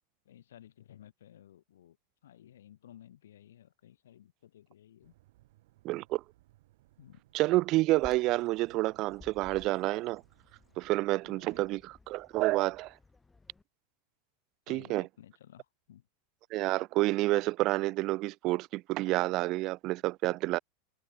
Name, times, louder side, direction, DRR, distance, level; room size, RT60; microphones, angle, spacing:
voice 1, 0.2-2.0 2.2-5.1 7.0-7.2 11.2-11.6 14.7-16.1, left 11 dB, 90° left, 2.2 m, -55 dB
sound 1, 5.0-11.0, right 17 dB, 70° right, 3.8 m, -64 dB
voice 2, 5.8-6.2 7.3-10.2 10.8-12.9 14.7-15.1 16.5-20.6, right 19 dB, 45° right, 0.5 m, -29 dB
Bird vocalization bird call bird song, 7.9-13.6, left 3 dB, 10° left, 3.0 m, -57 dB
supercardioid pair, 125°, 0 cm